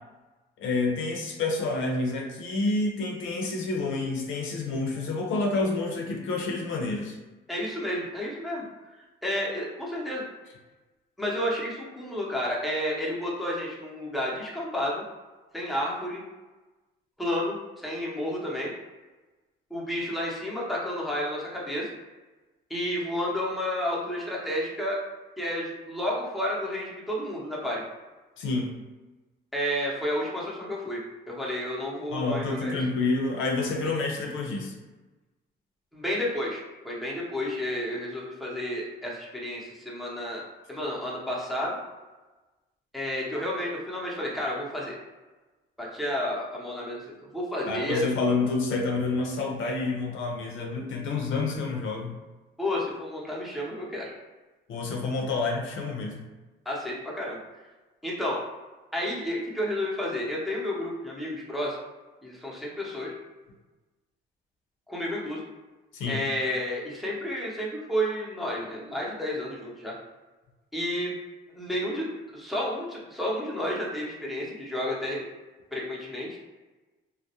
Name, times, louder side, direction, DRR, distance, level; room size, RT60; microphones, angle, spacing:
voice 1, 0.6-7.2 28.4-28.7 32.1-34.7 47.7-52.1 54.7-56.2 65.9-66.2, left 3 dB, 80° left, 0 dB, 0.5 m, -28 dB
voice 2, 7.5-8.6 9.2-10.2 11.2-15.0 15.5-16.2 17.2-18.7 19.7-21.9 22.7-25.0 25.4-27.8 29.5-32.8 35.9-41.8 42.9-44.9 45.8-47.0 47.3-48.0 52.6-54.1 56.7-57.4 58.0-58.4 58.9-61.8 62.2-63.1 64.9-65.4 66.1-69.9 70.7-71.2 71.5-75.2 75.7-76.3, left 1 dB, ahead, -5 dB, 0.7 m, -31 dB
2.3 x 2.0 x 2.8 m, 1.2 s
cardioid pair, 90°, 20 cm